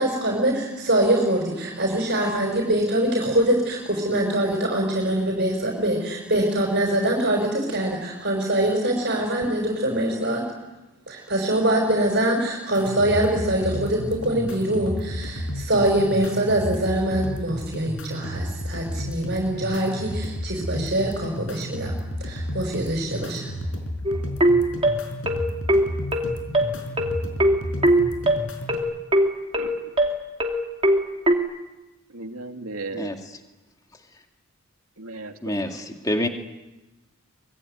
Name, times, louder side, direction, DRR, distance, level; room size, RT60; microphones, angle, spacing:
voice 1, 0.0-10.4 11.1-21.9 22.2-23.5, right 1 dB, 50° right, 0 dB, 5.6 m, -23 dB
sound 1, 12.7-28.7, equal, 60° left, 5.3 m, -32 dB
sound 2, 24.1-31.4, right 1 dB, 25° right, 2.6 m, -20 dB
voice 2, 29.6-30.1 32.1-33.1 35.0-35.6, right 3 dB, 75° right, 4 dB, 2.5 m, -36 dB
voice 3, 35.4-36.3, left 1 dB, 15° left, 4 dB, 2.2 m, -26 dB
24.5 x 22.0 x 9.6 m, 1.0 s
head